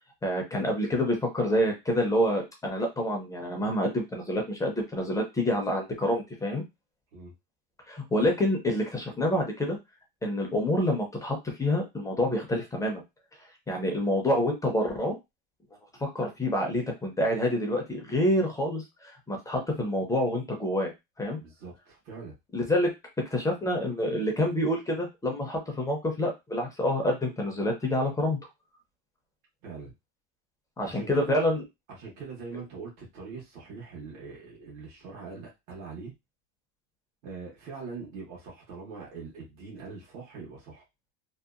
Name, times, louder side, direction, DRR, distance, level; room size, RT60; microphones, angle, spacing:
voice 1, 0.2-6.6 7.9-9.8 10.2-13.0 13.7-15.2 16.0-20.9 21.2-21.4 22.5-22.9 23.3-28.4 30.8-31.6, left 1 dB, 10° left, 2 dB, 0.4 m, -27 dB
voice 2, 21.4-22.3 29.6-29.9 30.8-31.6 32.0-36.1 37.2-40.8, right 4 dB, 85° right, -3 dB, 1.2 m, -42 dB
2.8 x 2.2 x 2.4 m, 0.22 s
cardioid pair, 145°, 38 cm